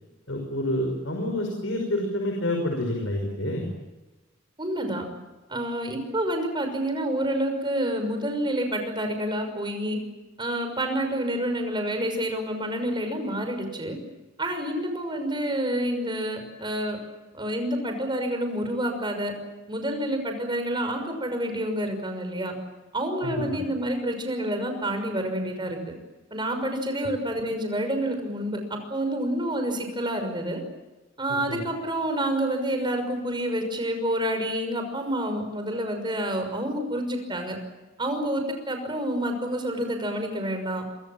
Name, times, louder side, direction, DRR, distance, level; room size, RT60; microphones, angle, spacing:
voice 1, 0.3-3.7 23.2-23.4 31.5-31.6, left 1 dB, 80° left, 2 dB, 6.0 m, -28 dB
voice 2, 4.6-5.0 5.5-10.0 10.4-14.0 14.4-17.0 17.3-19.3 19.7-22.6 22.9-25.8 26.3-30.6 31.2-37.6 38.0-40.8, right 1 dB, 25° right, 6 dB, 6.0 m, -28 dB
27.5 x 25.0 x 7.4 m, 1.1 s
head